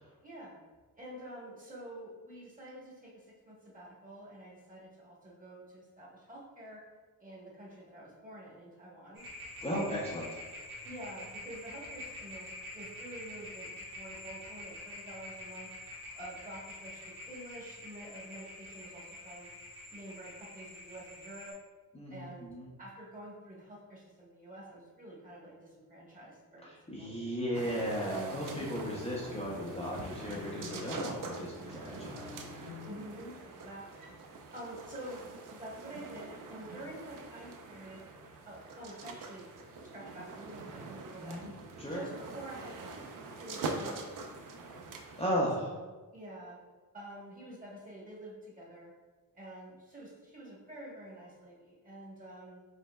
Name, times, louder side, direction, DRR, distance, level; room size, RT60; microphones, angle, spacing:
voice 1, 0.2-0.6 1.0-6.8 7.2-9.2 9.6-10.2 10.8-15.7 16.1-19.5 19.9-21.5 22.1-22.5 22.8-26.7 27.0-27.4 32.8-34.1 34.5-38.0 38.5-39.4 39.8-40.8 41.1-41.4 41.9-43.0 43.4-44.8 45.6-46.6 46.9-48.9 49.3-52.7, right 1 dB, 20° right, -5 dB, 1.1 m, -48 dB
sound 1, 9.1-21.5, left 1 dB, 80° right, 1.2 m, -47 dB
voice 2, 9.6-10.3 21.9-22.7 26.9-32.8 41.2-41.5 41.8-42.0 45.2-45.7, equal, 15° left, -7 dB, 0.6 m, -35 dB
sound 2, 27.5-45.3, right 3 dB, 60° right, 0.5 m, -44 dB
sound 3, 27.7-33.1, left 4 dB, 65° left, 0.8 m, -49 dB
5.2 x 3.2 x 2.2 m, 1.3 s
wide cardioid pair, 135°, 36 cm